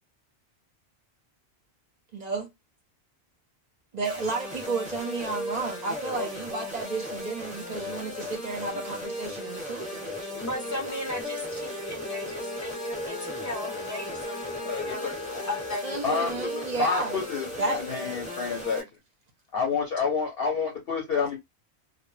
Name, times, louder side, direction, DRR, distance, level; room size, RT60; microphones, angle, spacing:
voice 1, 2.1-2.5 3.9-10.1 15.8-17.2 17.6-18.1, right 4 dB, 45° right, 0.6 m, -32 dB
sound 1, 4.0-18.8, left 1 dB, 5° right, 0.8 m, -36 dB
Wind instrument woodwind instrument, 10.0-18.5, left 2 dB, 85° left, 1.0 m, -42 dB
voice 2, 10.3-16.4, left 1 dB, 25° left, 0.4 m, -37 dB
voice 3, 14.6-15.2 16.0-16.3 16.8-18.8 19.5-21.4, left 5 dB, 60° left, 0.8 m, -29 dB
2.1 x 2.1 x 3.0 m
omnidirectional pair, 1.2 m